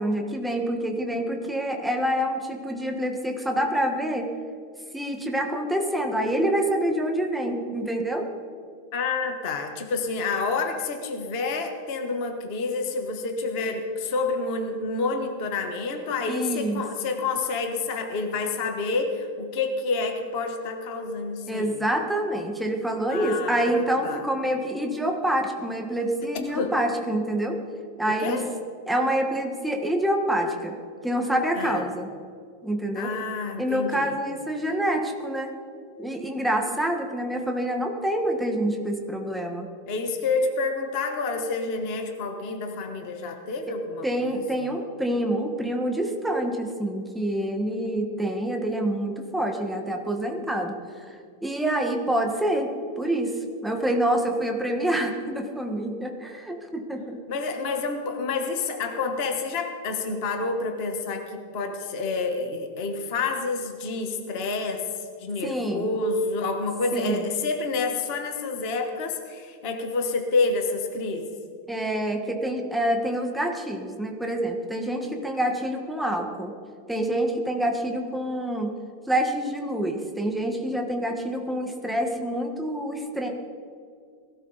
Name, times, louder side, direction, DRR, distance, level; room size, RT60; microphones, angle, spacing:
voice 1, 0.0-4.3 4.9-8.3 16.3-16.8 21.5-27.6 28.0-28.4 28.9-30.8 31.0-32.1 32.6-33.1 33.6-35.5 36.0-39.7 44.0-57.2 65.4-65.9 66.9-67.2 71.7-76.5 76.9-78.7 79.1-83.3, right 1 dB, ahead, 2 dB, 0.6 m, -27 dB
voice 2, 8.9-21.8 23.1-24.2 26.5-26.8 28.1-28.4 31.5-31.8 32.9-34.1 39.9-44.8 57.3-64.8 65.2-71.3, left 3 dB, 35° left, 5 dB, 1.2 m, -28 dB
20.0 x 13.0 x 4.0 m, 2.3 s
omnidirectional pair, 2.4 m